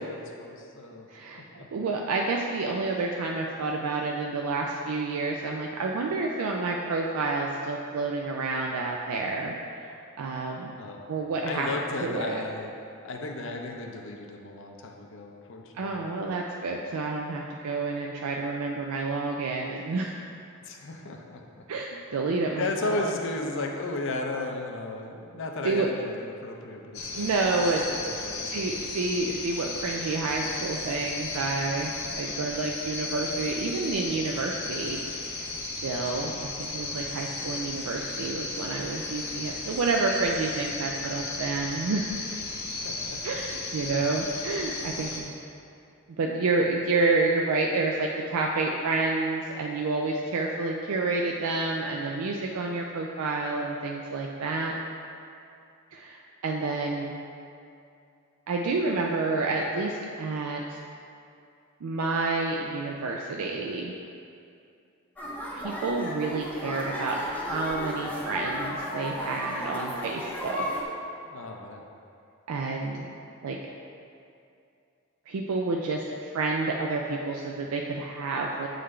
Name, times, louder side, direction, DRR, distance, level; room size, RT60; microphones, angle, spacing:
voice 1, 0.0-1.7 10.8-11.0 11.4-12.7 13.0-16.1 20.6-21.7 22.6-28.8 42.8-43.4 71.3-71.8, left 2 dB, 60° left, 2 dB, 0.6 m, -35 dB
voice 2, 1.1-1.4 1.7-10.8 11.1-11.7 12.0-12.4 15.7-20.2 21.7-23.1 25.6-25.9 27.1-28.0 28.5-35.0 35.6-42.1 43.2-45.4 46.2-54.7 55.9-57.1 58.5-60.8 61.8-63.9 65.5-70.7 72.5-73.1 73.4-73.6 75.3-78.7, right 3 dB, 85° right, 0 dB, 0.4 m, -29 dB
sound 1, 26.9-45.2, left 3 dB, 80° left, 1.0 m, -35 dB
sound 2, 65.2-70.8, equal, 5° left, 0.6 m, -34 dB
7.9 x 3.9 x 3.2 m, 2.5 s
head